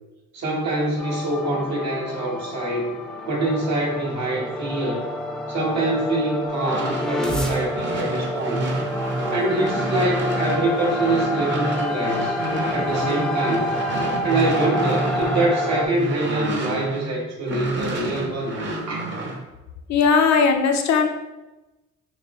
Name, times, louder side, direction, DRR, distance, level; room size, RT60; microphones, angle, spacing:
voice 1, 0.3-2.9 3.3-5.1 5.5-8.7 9.3-12.4 12.7-13.7 14.2-18.6 18.9-19.1, right 2 dB, 65° right, -2 dB, 1.4 m, -25 dB
sound 1, 1.0-15.9, left 1 dB, ahead, 0.5 m, -28 dB
sound 2, 6.5-17.1 17.4-19.4, right 2 dB, 40° right, 1.0 m, -29 dB
voice 2, 19.9-21.1, left 5 dB, 65° left, 4 dB, 0.6 m, -18 dB
5.9 x 2.1 x 3.0 m, 1.0 s
cardioid pair, 90°, 30 cm